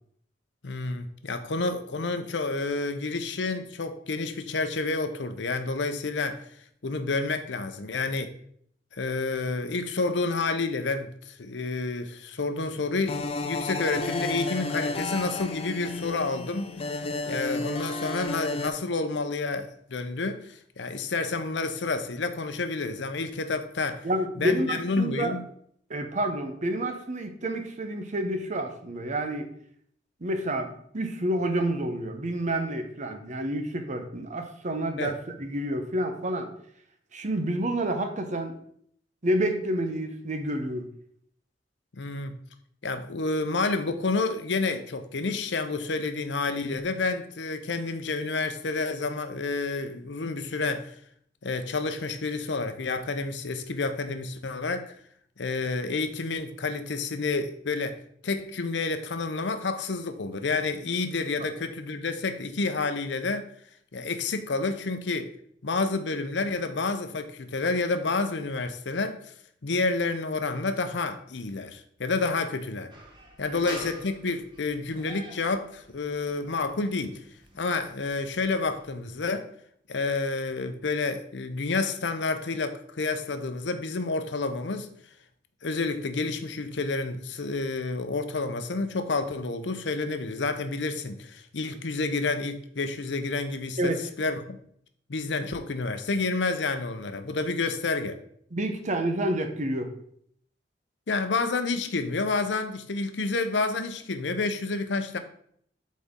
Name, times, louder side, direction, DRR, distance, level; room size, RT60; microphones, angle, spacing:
voice 1, 0.6-6.4 6.8-8.3 9.0-16.8 17.3-24.1 24.4-25.4 35.0-35.1 41.9-42.4 42.8-50.9 51.4-54.9 55.4-63.5 63.9-65.3 65.6-69.2 69.6-72.9 73.4-77.2 77.5-79.5 79.9-84.9 85.6-94.6 95.1-98.2 101.1-105.2, left 3 dB, 70° left, 0.7 m, -29 dB
sound 1, 13.0-18.7, left 2 dB, 35° left, 0.5 m, -32 dB
voice 2, 24.0-25.3 25.9-29.5 30.2-36.5 37.1-38.6 39.2-40.9 73.5-73.6 93.8-94.0 98.5-99.9, right 1 dB, 45° right, 0.9 m, -29 dB
sound 2, 72.9-79.0, right 1 dB, 25° right, 1.4 m, -46 dB
7.7 x 4.2 x 3.7 m
head